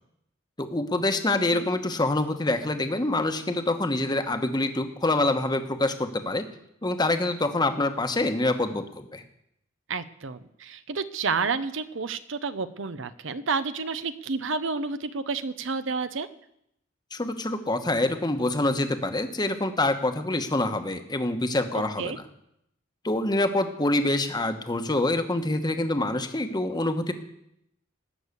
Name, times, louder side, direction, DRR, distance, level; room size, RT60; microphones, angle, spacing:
voice 1, 0.6-6.5 6.8-9.2 17.1-22.2 23.0-27.1, left 2 dB, 20° left, 7 dB, 1.1 m, -26 dB
voice 2, 1.3-1.7 9.9-16.3 21.7-22.2, right 4 dB, 70° right, 12 dB, 0.8 m, -30 dB
19.0 x 6.5 x 8.3 m, 0.78 s
head